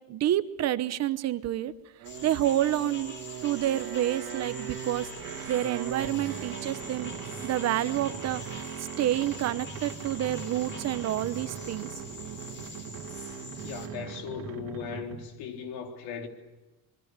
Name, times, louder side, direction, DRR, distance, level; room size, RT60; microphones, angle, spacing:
voice 1, 0.1-1.7 2.2-5.1 5.5-7.1 7.4-11.9, right 12 dB, 45° right, 1.0 m, -29 dB
sound 1, 2.0-13.9, left 3 dB, 30° left, 5.0 m, -44 dB
sound 2, 2.0-15.4, right 9 dB, 65° right, 3.0 m, -40 dB
voice 2, 13.6-16.3, left 6 dB, 80° left, 3.9 m, -38 dB
28.0 x 22.5 x 8.3 m
cardioid pair, 170°, 36 cm